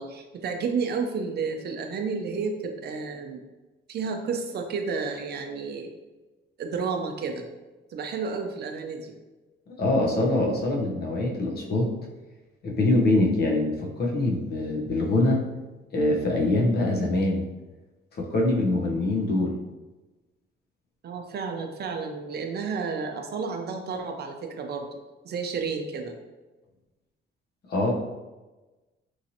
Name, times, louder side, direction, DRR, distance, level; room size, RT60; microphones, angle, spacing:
voice 1, 0.0-3.4 3.9-5.9 6.6-7.4 7.9-9.1 21.0-24.9 25.2-26.1, right 5 dB, 55° right, 4 dB, 0.5 m, -31 dB
voice 2, 9.7-11.9 12.6-15.4 15.9-17.5 18.1-19.6 27.7-27.9, left 2 dB, 55° left, 0 dB, 0.7 m, -24 dB
3.0 x 2.5 x 2.7 m, 1.1 s
cardioid pair, 90°, 20 cm